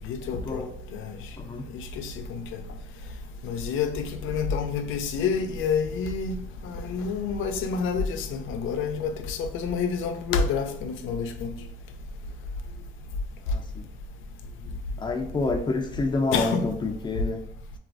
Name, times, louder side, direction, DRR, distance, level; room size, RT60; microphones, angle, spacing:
voice 1, 0.0-0.6 0.9-1.2 1.7-2.6 3.4-6.4 6.6-11.5 16.3-16.6, left 5 dB, 80° left, 0.4 m, -28 dB
voice 2, 13.4-13.8 15.0-17.4, left 3 dB, 25° left, 0.5 m, -28 dB
3.1 x 2.3 x 2.5 m
cardioid pair, 90°, 20 cm